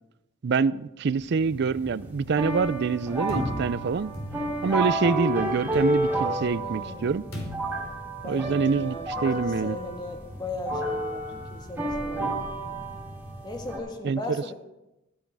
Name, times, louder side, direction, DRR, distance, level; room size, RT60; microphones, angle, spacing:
voice 1, 0.4-4.1 4.6-7.3 8.2-9.8 14.0-14.2, right 5 dB, 55° right, 0.4 m, -26 dB
sound 1, 1.2-13.8, right 1 dB, 10° right, 6.0 m, -31 dB
sound 2, 3.3-4.8 7.3-7.9, left 1 dB, 90° left, 4.6 m, -35 dB
voice 2, 6.6-7.2 8.2-9.1 9.3-12.3 13.4-14.5, left 2 dB, 20° left, 1.8 m, -38 dB
16.5 x 12.5 x 4.7 m
head